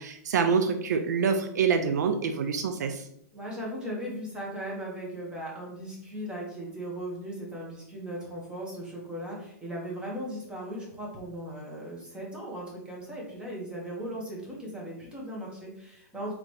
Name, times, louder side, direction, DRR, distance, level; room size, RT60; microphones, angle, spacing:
voice 1, 0.0-3.1, right 6 dB, 75° right, 7 dB, 0.5 m, -26 dB
voice 2, 3.3-16.3, equal, 10° right, -4 dB, 1.6 m, -38 dB
3.7 x 3.4 x 3.2 m, 0.72 s
hypercardioid pair, 125°, 9 cm